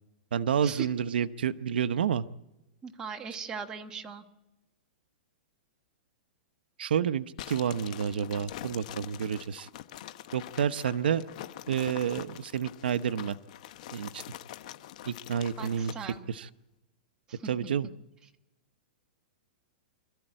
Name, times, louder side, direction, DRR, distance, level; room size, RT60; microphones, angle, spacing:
voice 1, 0.3-2.2 6.8-9.7 10.3-11.2 11.7-13.3 13.9-14.2 15.1-15.9 16.3-16.5 17.4-17.9, right 8 dB, 85° right, 13 dB, 0.8 m, -29 dB
voice 2, 2.8-4.2 15.6-16.2 17.3-17.5, right 5 dB, 15° right, 5 dB, 1.3 m, -39 dB
sound 1, 7.4-16.2, left 13 dB, 45° left, 0.9 m, -44 dB
25.5 x 13.5 x 8.9 m, 0.98 s
supercardioid pair, 170°, 5 cm